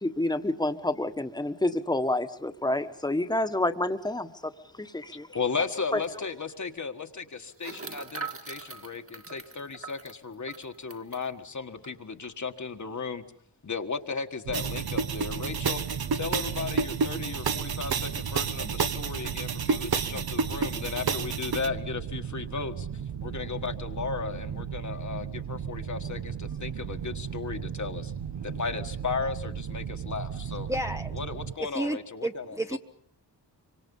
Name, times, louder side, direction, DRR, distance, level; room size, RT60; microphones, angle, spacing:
voice 1, 0.0-4.5 4.8-5.3 5.9-6.0, left 1 dB, 10° left, 8 dB, 1.5 m, -28 dB
voice 2, 5.3-13.2 13.6-15.8 16.1-28.1 28.4-30.7 31.1-32.8, left 5 dB, 45° left, 6 dB, 1.6 m, -35 dB
sound 1, 5.7-5.8 6.0-6.2 7.6-11.3 11.8-11.9 12.2-12.5, right 4 dB, 35° right, 1.9 m, -42 dB
sound 2, 14.4-31.5, right 8 dB, 85° right, 1.4 m, -36 dB
sound 3, 14.5-21.7, right 5 dB, 60° right, 1.2 m, -30 dB
voice 3, 30.7-31.1 31.7-32.8, right 1 dB, 5° right, 5 dB, 0.9 m, -32 dB
25.5 x 25.0 x 5.5 m, 0.64 s
wide cardioid pair, 110°, 41 cm